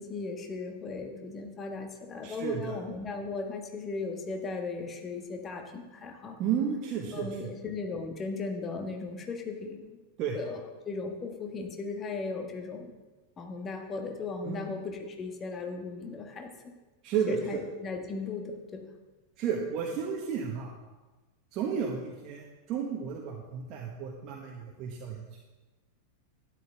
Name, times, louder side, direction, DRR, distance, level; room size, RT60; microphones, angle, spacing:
voice 1, 0.0-6.4 7.1-10.0 10.3-12.9 13.4-16.7 17.3-18.8, left 4 dB, 25° left, 4 dB, 1.5 m, -37 dB
voice 2, 2.2-2.8 6.4-7.5 10.2-10.4 14.4-14.6 17.0-17.6 19.4-20.7 21.5-25.2, right 7 dB, 35° right, -1 dB, 1.3 m, -32 dB
12.0 x 10.5 x 3.4 m, 1.2 s
figure-of-eight pair, 90°, 0 cm